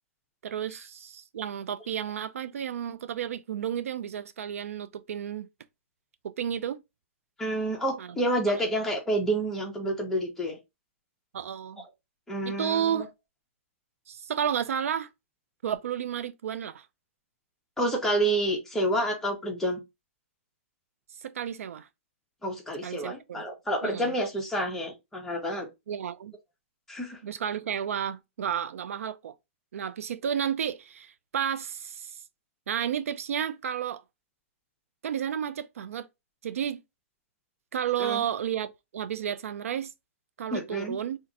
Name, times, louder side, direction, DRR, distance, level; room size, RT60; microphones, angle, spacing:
voice 1, 0.4-5.5 6.2-6.8 8.0-8.1 8.5-8.6 11.3-11.9 12.4-13.1 14.1-15.1 15.6-16.9 21.2-21.9 22.8-23.5 23.8-24.1 25.9-26.3 27.2-29.3 29.7-32.2 32.7-34.0 35.0-36.1 36.4-36.8 37.7-39.9 40.4-41.2, right 9 dB, 90° right, 0.4 m, -32 dB
voice 2, 7.4-10.6 12.3-13.1 17.8-19.8 22.4-25.7 26.9-27.2 38.0-38.2 40.5-41.0, right 1 dB, 5° left, 0.8 m, -29 dB
2.5 x 2.5 x 4.0 m
hypercardioid pair, 150°, 7 cm